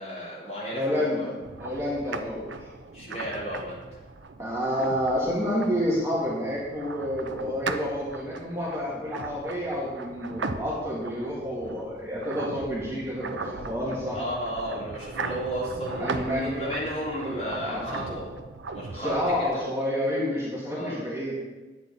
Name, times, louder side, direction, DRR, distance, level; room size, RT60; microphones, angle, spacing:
voice 1, 0.0-1.3 2.9-4.1 14.1-18.3 18.7-19.1 19.4-19.6 20.7-21.0, equal, 35° left, -7 dB, 3.4 m, -33 dB
voice 2, 0.7-1.3 1.6-2.7 4.4-14.2 16.0-16.7 17.2-17.9 18.9-21.4, equal, 15° right, -7 dB, 2.1 m, -29 dB
sound 1, 1.4-19.7, right 4 dB, 85° right, 0.6 m, -38 dB
10.0 x 8.5 x 4.0 m, 1.2 s
head